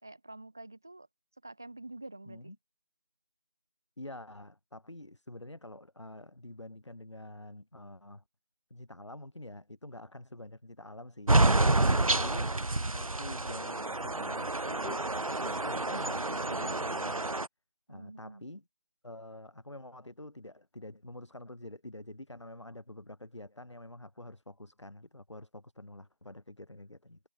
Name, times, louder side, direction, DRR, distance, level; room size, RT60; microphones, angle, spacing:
voice 1, 0.0-1.1 1.4-2.5 17.9-18.4, right 2 dB, 5° right, 1.7 m, -47 dB
voice 2, 4.0-8.2 8.7-12.5 12.9-17.2 17.9-18.6 19.0-27.2, left 1 dB, 50° left, 3.5 m, -47 dB
sound 1, 11.3-17.5, right 2 dB, 70° right, 1.0 m, -28 dB
figure-of-eight pair, 175°, 19 cm